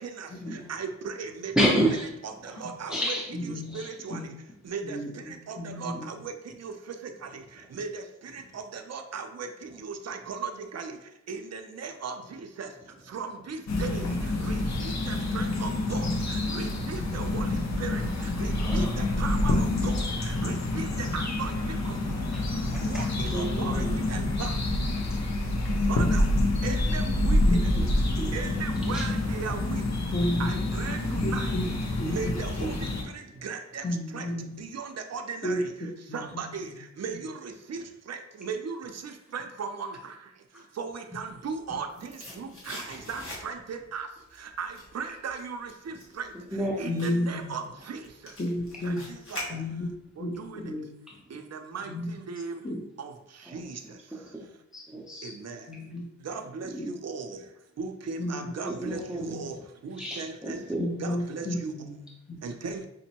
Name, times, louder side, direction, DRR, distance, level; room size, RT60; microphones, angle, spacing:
voice 1, 0.0-1.6 2.2-3.1 3.5-4.3 4.6-24.7 25.8-26.3 26.6-27.7 28.3-30.0 30.4-31.6 32.0-34.3 34.6-48.4 48.8-49.6 50.2-50.7 51.3-52.7 53.0-54.4 55.2-55.8 56.2-60.6 61.0-61.7 62.4-62.9, right 5 dB, 60° right, 6 dB, 0.5 m, -38 dB
voice 2, 1.6-2.2 2.4-2.6 2.9-3.3 3.6-3.9 8.5-8.6 17.8-18.1 18.6-19.0 19.9-20.3 22.7-24.0 24.9-25.4 27.2-27.3 28.9-29.0 33.3-33.4 40.5-40.6 42.3-42.4 46.5-46.9 51.1-51.4 53.5-53.7 54.1-55.3 58.6-59.3 60.0-60.9, equal, ahead, -3 dB, 0.6 m, -31 dB
voice 3, 3.3-3.7 4.1-4.3 4.8-6.1 16.5-16.6 27.5-27.9 28.2-28.4 28.9-29.0 30.1-30.5 31.2-32.3 32.6-32.8 33.8-34.5 35.4-35.6 36.1-36.4 46.9-47.6 48.4-49.0 49.5-49.9 50.2-50.9 51.8-52.1 52.6-52.8 55.7-56.0 56.7-56.9 58.2-58.5 59.2-59.5 60.8-62.4, left 1 dB, 30° left, 0 dB, 0.8 m, -32 dB
sound 1, 13.7-33.0, left 1 dB, 65° left, 0.6 m, -27 dB
sound 2, 41.6-43.8 44.2-50.0 50.4-50.5, left 1 dB, 45° left, 1.3 m, -43 dB
5.1 x 2.1 x 2.8 m, 0.82 s
wide cardioid pair, 75°, 29 cm